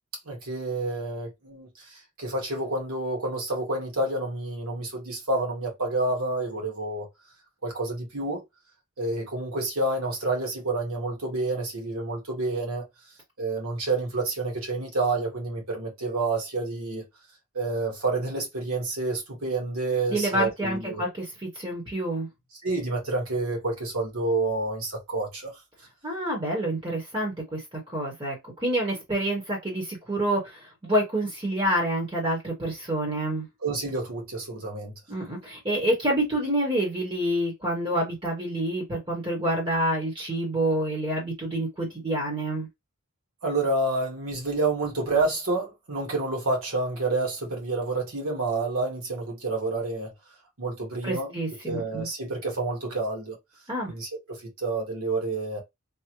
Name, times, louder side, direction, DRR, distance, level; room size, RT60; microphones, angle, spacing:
voice 1, 0.2-7.0 7.6-8.4 9.0-12.8 13.4-17.0 17.5-21.1 22.6-25.5 33.6-34.9 43.4-50.1 50.6-51.3 51.6-53.3 53.9-55.6, right 2 dB, 75° right, 1.5 m, -29 dB
voice 2, 20.1-22.3 26.0-27.6 27.9-28.4 28.6-33.5 35.1-42.7 51.0-52.1 53.7-53.9, right 1 dB, 20° right, 1.1 m, -27 dB
3.5 x 2.1 x 3.0 m
head